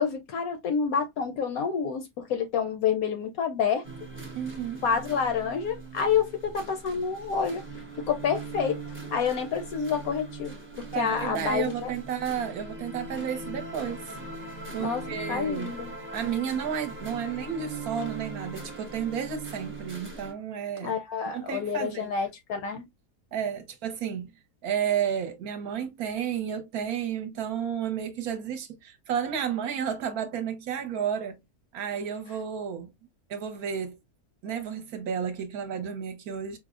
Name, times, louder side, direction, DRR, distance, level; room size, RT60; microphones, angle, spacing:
voice 1, 0.0-3.9 4.8-7.6 8.0-8.8 9.1-11.9 13.1-13.3 14.8-15.9 20.8-22.9, left 6 dB, 70° left, 0.9 m, -28 dB
sound 1, 3.8-20.3, right 3 dB, 15° right, 0.4 m, -40 dB
voice 2, 4.3-4.8 10.9-14.0 14.7-15.8 16.1-20.9 21.3-22.1 23.3-24.3 24.6-31.4 31.7-32.9 33.3-34.0 34.4-36.6, right 8 dB, 70° right, 1.0 m, -32 dB
4.6 x 2.0 x 2.4 m
omnidirectional pair, 1.8 m